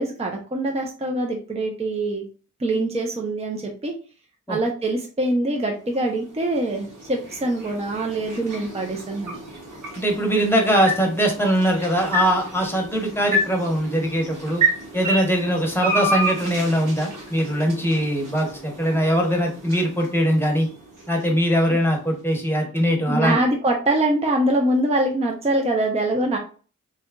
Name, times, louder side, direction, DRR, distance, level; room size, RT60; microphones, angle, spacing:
voice 1, 0.0-2.2 2.6-3.9 4.5-9.4 21.7-21.8 23.1-26.4, right 1 dB, 20° right, 1 dB, 0.5 m, -24 dB
sound 1, 5.8-22.0, right 1 dB, 75° right, 1.2 m, -31 dB
voice 2, 10.0-14.6 14.9-20.7 21.1-23.4, equal, 5° left, 1 dB, 1.0 m, -21 dB
2.8 x 2.3 x 2.2 m, 0.38 s
cardioid pair, 50°, 32 cm